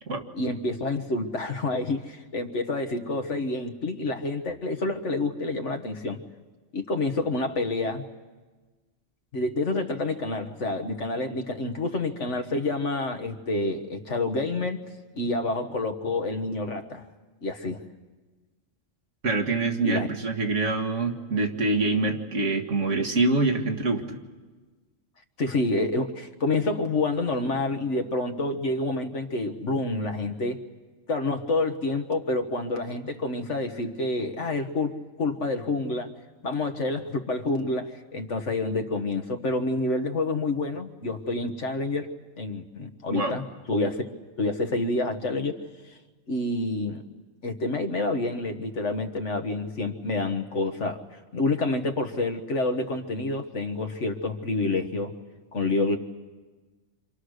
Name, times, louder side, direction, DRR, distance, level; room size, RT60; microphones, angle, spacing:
voice 1, 0.3-6.2 6.7-8.0 9.3-14.8 15.1-17.0 17.4-17.8 19.8-20.1 25.4-30.6 31.1-36.1 36.4-42.1 42.4-44.1 44.4-45.6 45.9-46.0 46.3-47.0 47.4-51.0 51.3-55.1 55.5-56.0, left 2 dB, 75° left, 6 dB, 1.8 m, -28 dB
voice 2, 19.2-24.2 43.1-43.4, right 3 dB, 80° right, 3 dB, 2.2 m, -25 dB
28.5 x 26.5 x 6.6 m, 1.3 s
omnidirectional pair, 1.2 m